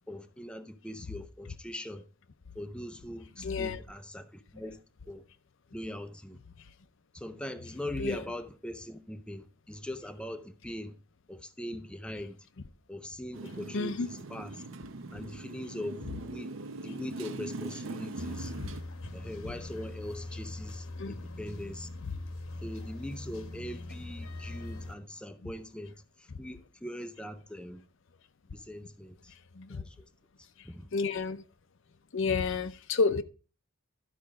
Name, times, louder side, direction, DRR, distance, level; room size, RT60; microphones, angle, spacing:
voice 1, 0.1-2.0 2.6-4.8 5.1-5.2 5.7-6.4 7.1-10.9 11.3-12.4 12.9-14.6 15.1-16.5 16.8-18.5 19.1-21.9 22.6-25.9 26.2-27.8 28.5-29.3 29.7-30.1 30.6-30.9, left 1 dB, 5° left, 0.5 m, -41 dB
voice 2, 3.4-3.8 8.0-8.2 13.7-14.1 18.6-18.7 21.0-21.1 29.6-29.8 30.9-31.4 32.1-33.2, left 4 dB, 60° left, 0.6 m, -30 dB
Motorcycle, 13.3-18.8, right 2 dB, 60° right, 0.8 m, -41 dB
sound 1, 18.2-24.9, left 2 dB, 75° left, 1.1 m, -42 dB
12.5 x 5.1 x 4.8 m
head